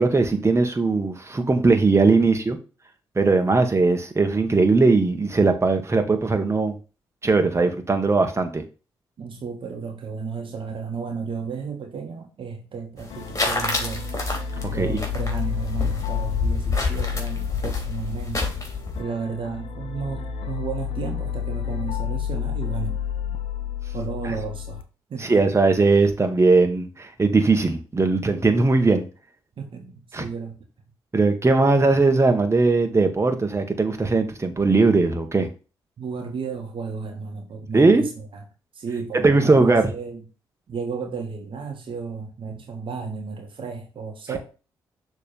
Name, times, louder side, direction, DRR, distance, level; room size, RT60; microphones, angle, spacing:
voice 1, 0.0-2.6 3.2-6.8 7.2-8.6 14.7-15.0 25.2-29.1 30.1-30.3 31.1-35.5 37.7-38.0 39.1-39.9, right 3 dB, 25° right, 1.7 m, -19 dB
voice 2, 9.2-14.1 14.7-18.5 19.0-23.0 23.9-24.8 25.1-25.4 29.6-30.6 36.0-38.4 38.7-40.2 40.7-44.4, right 5 dB, 60° right, 1.6 m, -33 dB
sound 1, 13.0-19.0, left 3 dB, 30° left, 2.9 m, -29 dB
sound 2, 13.1-24.8, left 8 dB, 65° left, 0.9 m, -30 dB
6.7 x 3.6 x 5.5 m
hypercardioid pair, 45°, 10 cm